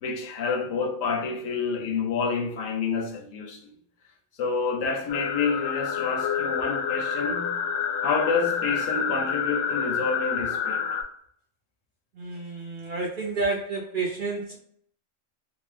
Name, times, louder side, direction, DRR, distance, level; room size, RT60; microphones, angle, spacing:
voice 1, 0.0-3.7 4.4-7.6 8.0-10.9, left 5 dB, 80° left, 1.0 m, -28 dB
sound 1, 5.1-11.0, left 7 dB, 65° left, 0.7 m, -28 dB
voice 2, 12.2-14.6, right 3 dB, 60° right, 0.5 m, -30 dB
2.8 x 2.0 x 3.1 m
omnidirectional pair, 1.3 m